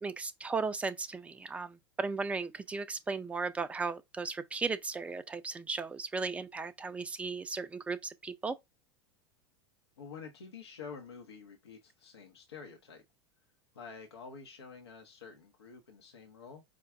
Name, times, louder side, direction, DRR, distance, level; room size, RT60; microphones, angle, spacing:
voice 1, 0.0-8.6, right 4 dB, 10° right, 0.4 m, -36 dB
voice 2, 10.0-13.0 13.7-16.6, left 5 dB, 75° left, 0.8 m, -48 dB
5.0 x 2.3 x 3.3 m
figure-of-eight pair, 85°, 14 cm